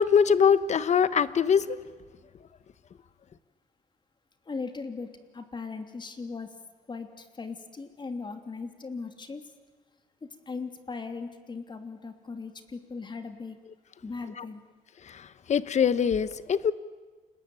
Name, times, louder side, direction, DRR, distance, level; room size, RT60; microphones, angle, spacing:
voice 1, 0.0-1.8 14.4-14.5 15.0-16.7, left 7 dB, 50° left, 15 dB, 1.2 m, -23 dB
voice 2, 4.5-6.5 6.9-9.4 10.2-13.6 14.0-14.6, left 4 dB, 30° left, 7 dB, 3.0 m, -38 dB
29.5 x 20.5 x 9.1 m, 1.4 s
cardioid pair, 95°, 15 cm